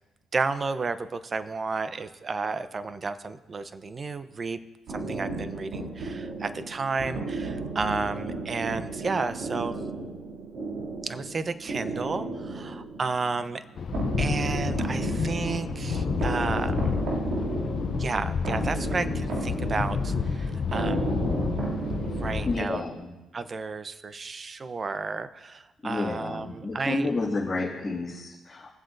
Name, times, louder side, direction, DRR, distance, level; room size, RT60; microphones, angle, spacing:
voice 1, 0.3-4.6 4.9-9.8 11.0-13.6 14.2-17.1 18.0-21.2 22.0-22.8 23.3-27.1, right 4 dB, 35° right, 12 dB, 0.6 m, -32 dB
sound 1, 4.9-23.0, right 3 dB, 80° right, 2.5 m, -33 dB
sound 2, 13.8-22.6, left 5 dB, 50° left, 0.5 m, -30 dB
voice 2, 22.4-23.1 25.8-28.7, left 3 dB, 30° left, -9 dB, 2.1 m, -30 dB
20.0 x 7.7 x 2.6 m, 1.1 s
cardioid pair, 90°, 0 cm